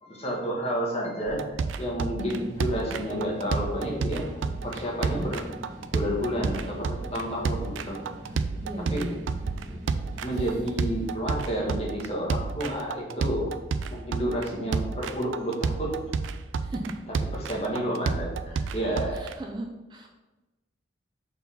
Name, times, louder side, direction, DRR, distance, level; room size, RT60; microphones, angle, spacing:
voice 1, 0.0-1.4 1.8-4.3 4.6-5.4 5.9-8.0 8.9-9.0 10.2-13.5 13.8-16.0 17.3-19.2, equal, 35° left, -3 dB, 1.4 m, -30 dB
sound 1, 1.3-19.3, right 4 dB, 85° right, 0.4 m, -30 dB
voice 2, 2.2-2.5 5.1-5.3 8.6-9.2 16.6-17.0 19.1-20.1, right 1 dB, 25° right, 2 dB, 0.4 m, -36 dB
sound 2, 2.4-11.1, equal, 45° right, 1.6 m, -44 dB
4.7 x 4.0 x 5.4 m, 1.1 s
head